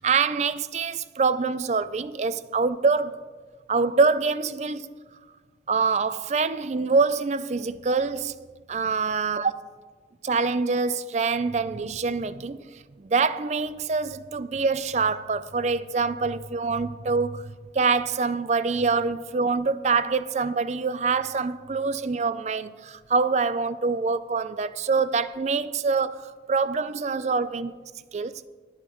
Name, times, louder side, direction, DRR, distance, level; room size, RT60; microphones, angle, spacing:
voice 1, 0.0-3.1 3.7-4.9 5.7-8.3 8.7-9.5 10.2-12.6 13.0-27.8 28.1-28.3, right 4 dB, 40° right, 0.4 m, -25 dB
21.0 x 9.0 x 3.0 m
head